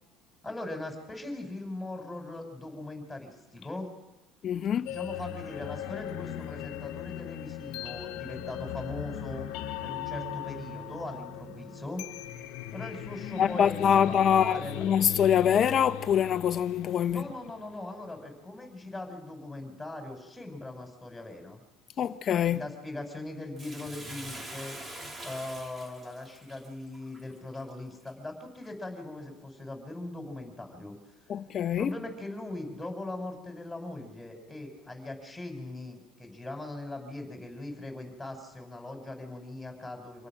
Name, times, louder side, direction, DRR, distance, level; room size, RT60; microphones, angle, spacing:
voice 1, 0.4-3.9 4.9-9.4 9.8-12.1 12.7-14.9 17.1-21.6 22.5-24.8 25.2-31.0 31.8-40.3, left 2 dB, 5° left, 5.7 m, -40 dB
voice 2, 4.4-4.9 13.4-17.2 22.0-22.7 31.3-31.9, left 8 dB, 45° left, 1.0 m, -25 dB
sound 1, 4.9-17.8, left 11 dB, 75° left, 1.3 m, -39 dB
Bathtub (filling or washing), 23.6-28.1 28.6-28.7, right 1 dB, 25° right, 3.0 m, -44 dB
26.5 x 18.0 x 6.1 m
supercardioid pair, 105°, 0 cm